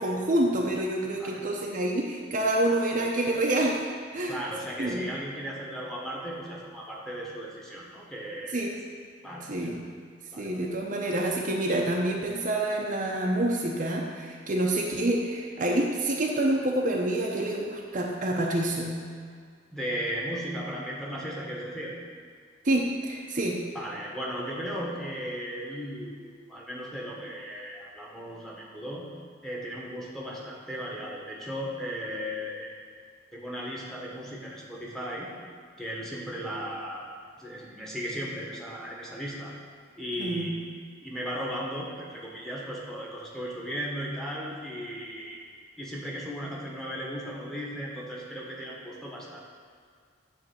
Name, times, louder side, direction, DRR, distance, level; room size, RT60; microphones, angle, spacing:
voice 1, 0.0-3.8 4.1-4.4 4.8-5.1 8.5-8.7 9.5-9.8 10.4-19.0 22.6-23.6 40.2-40.5, right 1 dB, 45° right, -1 dB, 0.8 m, -27 dB
voice 2, 4.3-8.6 9.2-9.5 10.3-10.7 19.7-21.9 23.7-26.1 26.5-29.1 29.4-32.8 33.3-35.3 35.8-37.1 37.4-39.5 40.0-40.6 41.0-45.4 45.8-49.5, equal, ahead, -4 dB, 1.3 m, -36 dB
9.7 x 3.5 x 7.0 m, 2.1 s
head